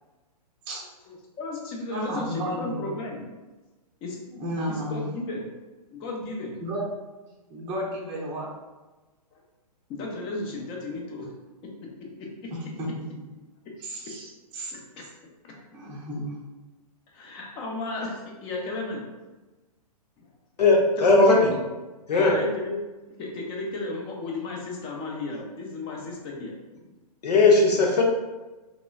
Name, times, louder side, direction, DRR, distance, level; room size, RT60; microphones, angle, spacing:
voice 1, 1.1-3.3 4.0-4.2 4.7-5.5 5.9-6.6 9.3-9.4 9.9-11.3 12.2-12.5 14.7-15.0 15.4-15.6 17.1-19.1 20.2-20.3 21.0-21.3 22.1-22.8 23.2-26.6, left 2 dB, 25° left, -1 dB, 0.6 m, -34 dB
voice 2, 1.9-2.9 4.3-5.0 6.6-6.9 7.5-8.5 12.5-12.9 13.8-14.7 15.7-16.3, equal, 20° right, -4 dB, 0.6 m, -32 dB
voice 3, 20.6-21.5 22.1-22.4 27.2-28.0, left 3 dB, 80° left, 0 dB, 0.8 m, -18 dB
3.0 x 2.9 x 2.3 m, 1.2 s
hypercardioid pair, 135°, 20 cm